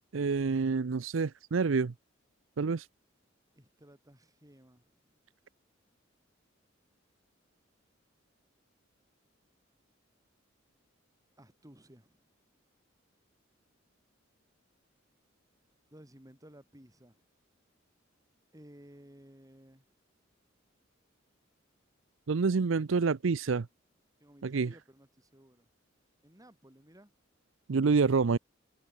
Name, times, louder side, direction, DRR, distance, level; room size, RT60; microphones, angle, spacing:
voice 1, 0.1-1.9 2.6-2.9 22.3-23.7 24.4-24.7 27.7-28.4, right 4 dB, 75° right, 0.6 m, -27 dB
voice 2, 3.6-5.1 11.4-12.2 15.9-17.3 18.5-19.9 24.2-25.7 26.2-27.1, right 1 dB, 20° right, 5.2 m, -56 dB
head